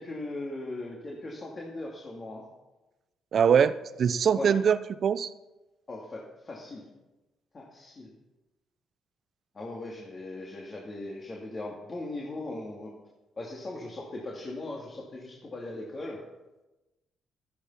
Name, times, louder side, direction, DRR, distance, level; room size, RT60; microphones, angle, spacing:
voice 1, 0.0-2.4 4.3-4.6 5.9-6.8 7.5-8.1 9.5-12.9 13.4-16.2, left 2 dB, 35° left, -2 dB, 2.5 m, -39 dB
voice 2, 3.3-5.3, right 7 dB, 55° right, 15 dB, 0.7 m, -23 dB
13.5 x 10.0 x 5.6 m, 1.0 s
cardioid pair, 90°, 0 cm